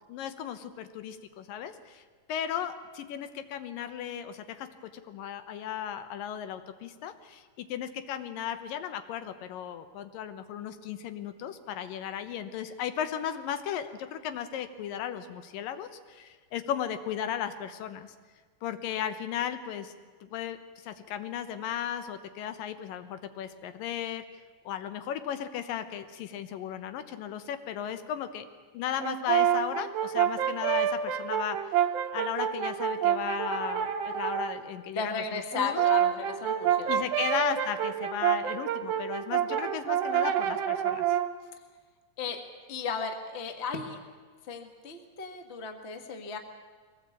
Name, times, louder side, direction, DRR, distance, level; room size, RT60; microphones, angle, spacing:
voice 1, 0.1-2.0 2.3-18.1 18.6-19.9 20.2-24.2 24.7-28.5 28.7-31.6 32.1-35.9 36.9-41.1, left 9 dB, 85° left, 10 dB, 2.8 m, -35 dB
Brass instrument, 29.0-34.6 35.5-41.4, right 10 dB, 70° right, 1.6 m, -28 dB
voice 2, 34.9-37.0 42.2-44.0 44.5-46.4, left 5 dB, 30° left, 5 dB, 1.2 m, -35 dB
22.5 x 17.5 x 8.5 m, 1.5 s
omnidirectional pair, 3.8 m